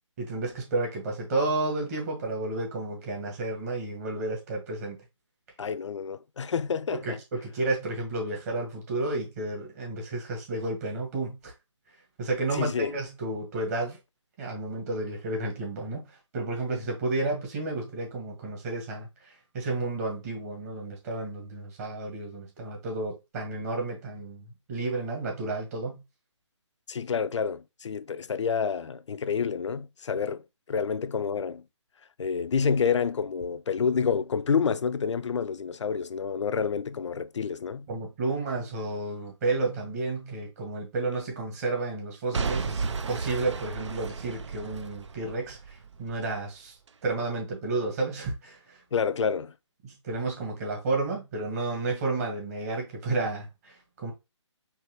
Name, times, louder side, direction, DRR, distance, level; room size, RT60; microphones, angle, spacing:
voice 1, 0.2-5.0 7.0-11.5 12.2-14.0 14.4-16.1 16.3-26.0 37.9-46.7 47.0-48.8 49.8-54.1, right 2 dB, 30° right, 1.8 m, -31 dB
voice 2, 5.6-7.2 12.5-12.9 26.9-30.4 30.7-31.6 32.2-37.9 48.9-49.5, left 6 dB, 70° left, 0.5 m, -28 dB
Boom / Shatter / Crushing, 42.3-46.3 46.9-47.0, right 4 dB, 65° right, 0.6 m, -33 dB
4.6 x 3.1 x 3.1 m
figure-of-eight pair, 150°, 16 cm